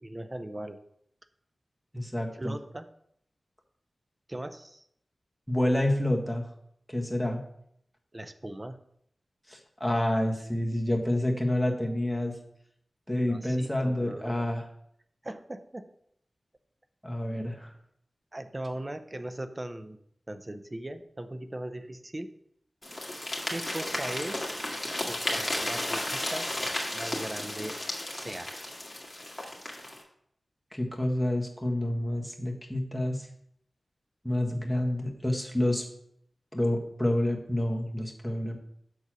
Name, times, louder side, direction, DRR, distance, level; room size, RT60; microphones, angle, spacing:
voice 1, 0.0-0.8 2.3-2.9 4.3-4.8 8.1-8.8 13.2-14.5 15.2-15.9 18.3-20.0 20.3-22.3 23.5-24.6 25.0-27.8 28.1-28.6, right 1 dB, 30° right, 10 dB, 0.6 m, -39 dB
voice 2, 1.9-2.5 5.5-6.4 6.9-7.4 9.5-12.4 13.1-14.6 17.0-17.7 30.7-33.3 34.2-35.8 36.5-38.6, left 1 dB, 5° left, 1 dB, 1.5 m, -28 dB
sound 1, 22.8-30.0, left 1 dB, 20° left, 1.9 m, -33 dB
6.4 x 4.1 x 6.1 m, 0.71 s
cardioid pair, 45°, 0 cm